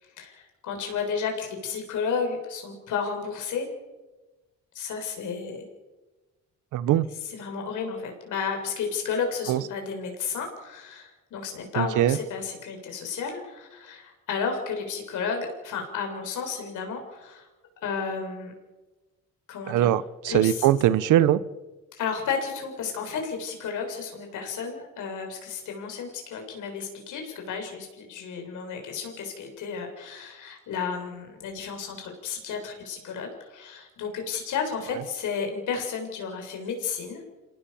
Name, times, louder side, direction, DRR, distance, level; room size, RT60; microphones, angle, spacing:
voice 1, 0.0-3.7 4.7-5.7 7.3-17.5 17.8-18.5 19.5-19.9 20.3-20.7 21.9-37.2, left 6 dB, 80° left, 3 dB, 7.3 m, -32 dB
voice 2, 6.7-7.1 9.5-9.6 11.8-12.2 19.7-21.4, right 12 dB, 90° right, 16 dB, 1.1 m, -21 dB
28.0 x 18.5 x 7.2 m, 1.2 s
cardioid pair, 90°, 30 cm